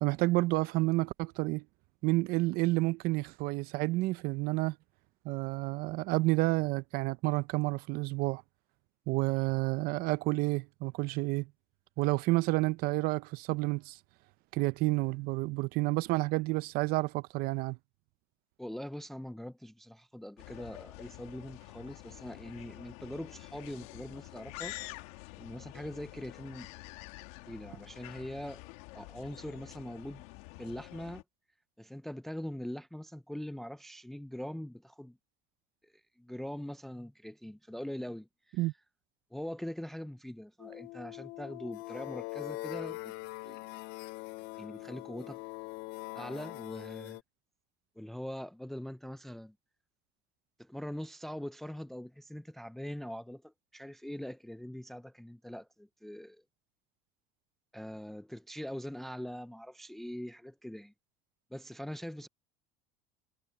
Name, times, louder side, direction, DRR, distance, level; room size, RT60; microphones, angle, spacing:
voice 1, 0.0-1.6 2.0-4.8 5.2-8.4 9.1-11.5 12.0-14.0 14.5-17.8 38.6-38.7, right 21 dB, 60° right, 0.6 m, -30 dB
voice 2, 18.6-24.8 25.4-26.7 27.5-28.6 28.9-30.2 30.6-31.2 31.8-35.2 35.8-38.7 39.3-43.1 43.4-43.8 44.6-45.4 46.1-47.2 48.0-49.5 50.6-56.4 57.7-60.9 61.5-62.3, equal, ahead, 0.5 m, -42 dB
sound 1, 20.4-31.2, left 21 dB, 85° left, 1.9 m, -48 dB
sound 2, 40.6-47.2, left 23 dB, 65° left, 0.5 m, -42 dB
cardioid pair, 145°, 17 cm